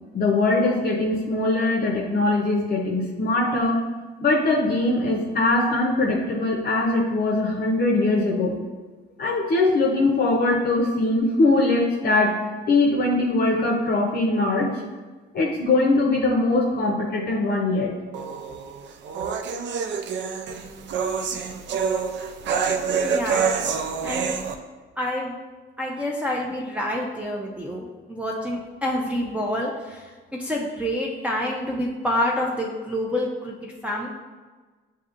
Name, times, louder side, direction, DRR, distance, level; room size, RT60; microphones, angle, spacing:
voice 1, 0.1-3.8 4.2-8.6 9.2-12.4 12.7-14.7 15.3-17.9, left 2 dB, 50° left, 0 dB, 0.6 m, -21 dB
sound 1, 18.1-24.5, right 6 dB, 65° right, 0.4 m, -27 dB
voice 2, 23.0-24.3 25.0-25.3 25.8-30.1 30.4-34.1, left 1 dB, 5° right, -3 dB, 0.5 m, -28 dB
6.5 x 2.7 x 2.5 m, 1.3 s
cardioid pair, 90°, 20 cm